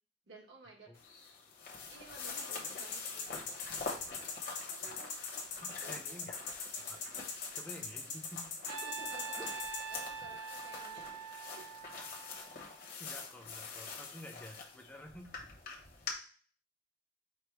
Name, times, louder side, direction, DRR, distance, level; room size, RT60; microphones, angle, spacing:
voice 1, 0.3-1.0 1.9-3.7 4.6-5.4 5.8-6.0 8.7-9.4 9.9-11.7, right 3 dB, 65° right, -1 dB, 1.2 m, -55 dB
sound 1, 0.9-16.1, left 4 dB, 50° left, 1.0 m, -46 dB
sound 2, 2.2-9.8, left 5 dB, 75° left, 1.2 m, -40 dB
voice 2, 5.6-6.4 6.9-7.0 7.5-8.5 9.3-9.5 13.0-15.4, left 1 dB, 10° left, 3 dB, 0.6 m, -50 dB
Trumpet, 8.7-12.9, right 5 dB, 85° right, 0.3 m, -44 dB
5.0 x 2.1 x 4.4 m, 0.42 s
head